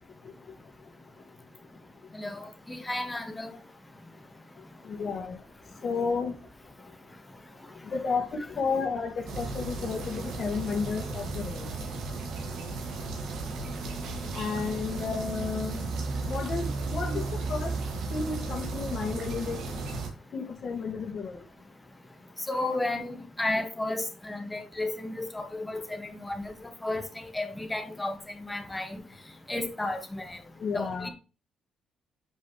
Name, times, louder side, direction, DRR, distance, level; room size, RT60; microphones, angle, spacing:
voice 1, 2.1-3.5 22.5-29.0 29.5-30.4 30.7-31.1, left 2 dB, 15° left, 1.5 m, -33 dB
voice 2, 4.8-5.4 5.8-6.3 7.9-11.7 14.3-15.9 16.2-17.7 18.1-19.6 20.3-21.4 30.6-31.1, left 5 dB, 55° left, 1.6 m, -32 dB
sound 1, 9.3-20.1, right 3 dB, 75° right, 1.9 m, -34 dB
7.4 x 5.1 x 3.1 m
cardioid pair, 90°, 0 cm